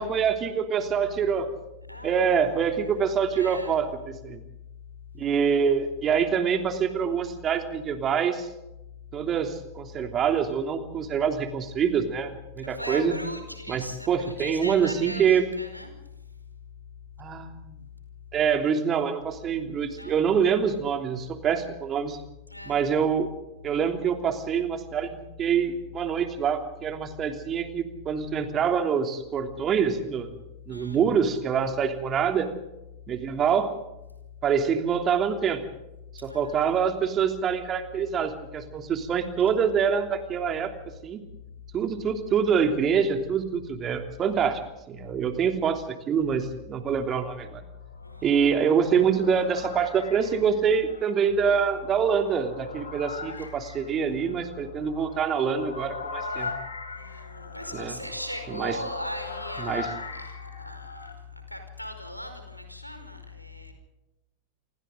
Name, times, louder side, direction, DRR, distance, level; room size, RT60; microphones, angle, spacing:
voice 1, 0.0-1.5 2.0-4.4 5.1-8.5 9.1-13.1 13.7-15.4 17.2-17.8 18.3-22.2 22.6-23.3 23.6-30.3 30.7-32.5 33.1-33.7 34.4-35.6 36.1-40.7 41.0-41.2 41.7-44.6 44.9-47.6 48.2-56.5 57.7-58.0 58.5-58.8 59.6-59.9, right 7 dB, 25° right, 6 dB, 3.1 m, -25 dB
voice 2, 1.9-3.0 3.3-3.8 12.7-15.9 19.9-20.2 22.5-22.8 30.7-31.0 36.3-36.6 44.3-44.6 48.0-48.3 57.0-61.1 61.5-63.7, left 1 dB, 90° right, 6 dB, 4.9 m, -38 dB
sound 1, 47.7-61.2, left 4 dB, 75° left, 4.3 m, -40 dB
28.0 x 24.5 x 3.9 m, 0.95 s
figure-of-eight pair, 90°, 0 cm